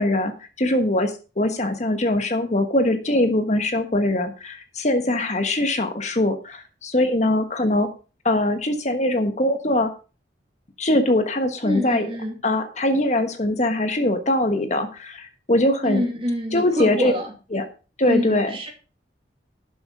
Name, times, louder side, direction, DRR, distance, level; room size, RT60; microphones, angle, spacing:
voice 1, 0.0-7.9 8.2-9.9 10.8-12.1 12.4-16.0 16.5-17.1 17.5-17.7 18.0-18.6, left 1 dB, 40° left, 7 dB, 1.3 m, -22 dB
voice 2, 11.6-12.4 15.8-17.3 18.0-18.7, equal, 30° right, 2 dB, 2.7 m, -26 dB
12.0 x 7.1 x 4.8 m, 0.34 s
head